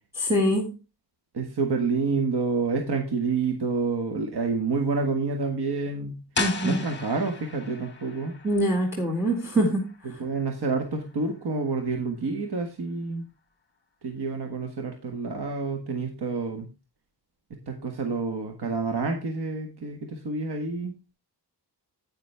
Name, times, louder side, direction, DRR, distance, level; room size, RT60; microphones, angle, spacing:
voice 1, 0.2-0.7 6.4-6.8 8.4-10.2, equal, 5° right, 1 dB, 2.2 m, -24 dB
voice 2, 1.3-6.2 6.6-8.3 10.2-13.3 14.0-16.7 17.5-20.9, right 4 dB, 70° right, 4 dB, 1.6 m, -28 dB
sound 1, 6.3-12.0, left 4 dB, 25° left, 1.9 m, -37 dB
9.9 x 9.0 x 3.5 m, 0.31 s
wide cardioid pair, 130°, 42 cm